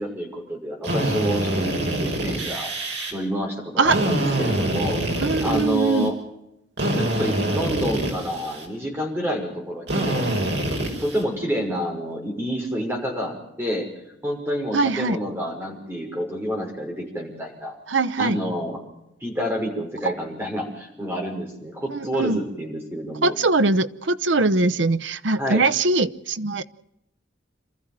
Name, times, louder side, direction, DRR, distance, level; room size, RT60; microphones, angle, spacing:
voice 1, 0.0-2.7 3.1-6.1 7.0-10.3 11.0-13.9 14.2-17.7 18.2-18.8 19.2-23.3 25.4-25.6, equal, 15° right, 0 dB, 5.8 m, -28 dB
Drill, 0.8-3.1 3.9-6.1 6.8-8.7 9.9-11.2, right 1 dB, 65° right, 5.4 m, -25 dB
voice 2, 5.2-6.1 14.7-15.2 17.9-18.4 20.0-20.1 21.9-22.4 23.2-26.6, right 3 dB, 80° right, 11 dB, 0.8 m, -21 dB
27.5 x 14.0 x 7.6 m, 0.86 s
head